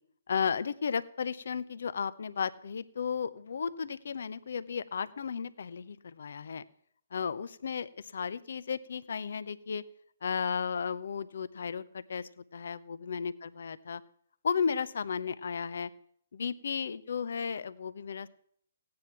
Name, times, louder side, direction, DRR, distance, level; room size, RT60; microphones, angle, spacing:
voice 1, 0.3-6.6 7.1-9.8 10.2-14.0 14.4-15.9 16.3-18.3, left 6 dB, 65° left, 15 dB, 0.8 m, -34 dB
16.5 x 9.6 x 5.9 m, 0.64 s
figure-of-eight pair, 135°, 0 cm